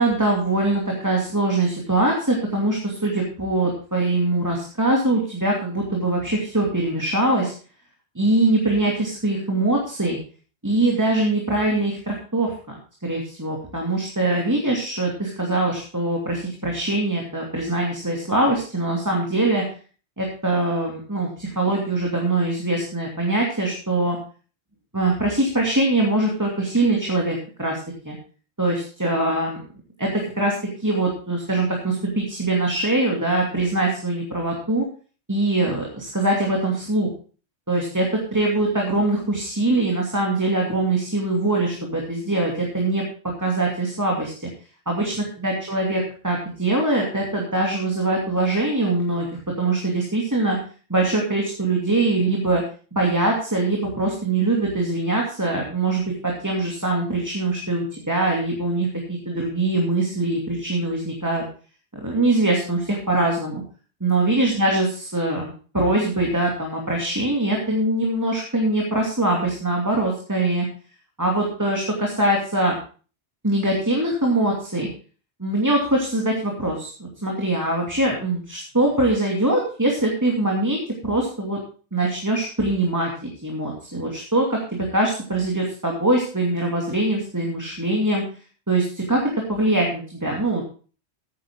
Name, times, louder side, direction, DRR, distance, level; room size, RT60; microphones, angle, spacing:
voice 1, 0.0-7.5 8.1-10.2 10.6-12.5 13.0-19.6 20.2-24.2 24.9-27.8 28.0-28.2 28.6-29.6 30.0-30.5 30.8-34.8 35.3-37.1 37.7-43.0 43.4-44.5 44.9-45.1 45.4-50.6 50.9-52.6 52.9-61.4 61.9-63.6 64.0-70.6 71.2-72.8 73.4-74.9 75.4-81.6 81.9-88.2 88.7-90.6, right 2 dB, 15° right, -1 dB, 2.6 m, -23 dB
14.5 x 9.6 x 3.7 m, 0.38 s
omnidirectional pair, 1.2 m